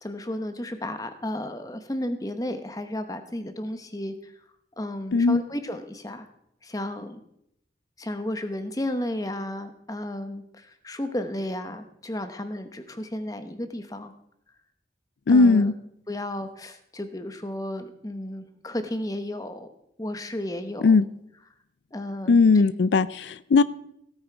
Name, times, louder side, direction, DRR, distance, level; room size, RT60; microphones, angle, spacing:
voice 1, 0.0-4.3 4.8-6.3 6.6-7.2 8.0-14.1 15.3-15.7 16.1-19.7 20.0-21.0 21.9-22.6, left 1 dB, 20° left, 9 dB, 0.9 m, -33 dB
voice 2, 15.3-15.7 20.8-21.0 22.3-23.6, left 4 dB, 85° left, 17 dB, 0.4 m, -18 dB
17.0 x 8.9 x 4.5 m, 0.77 s
head